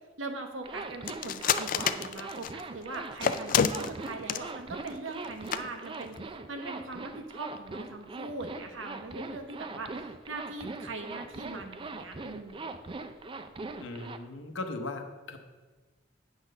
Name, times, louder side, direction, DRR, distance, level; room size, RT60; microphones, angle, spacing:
voice 1, 0.2-10.0 10.3-12.7, right 2 dB, 80° right, 5 dB, 1.0 m, -41 dB
Zipper (clothing), 0.6-14.2, right 3 dB, 25° right, 0.4 m, -41 dB
sound 1, 1.1-2.6 3.2-4.5 4.8-4.9 5.2-5.3 5.5-5.6 6.0-6.2, left 8 dB, 45° left, 0.3 m, -27 dB
voice 2, 13.8-15.5, left 2 dB, 70° left, 6 dB, 0.9 m, -38 dB
8.5 x 4.0 x 6.5 m, 1.3 s
head